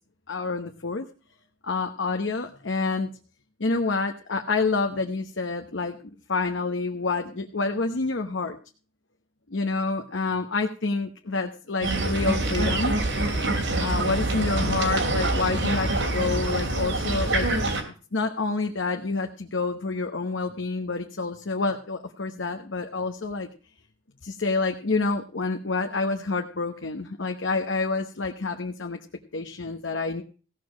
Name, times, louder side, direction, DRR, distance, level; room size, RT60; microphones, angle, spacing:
voice 1, 0.3-1.1 1.6-3.1 3.6-6.0 6.3-8.6 9.5-13.0 13.8-17.5 18.1-23.5 24.2-29.0 29.3-30.2, left 3 dB, 75° left, 5 dB, 1.0 m, -28 dB
sound 1, 11.8-17.8, right 2 dB, 70° right, 2.9 m, -25 dB
16.0 x 6.8 x 6.2 m, 0.37 s
head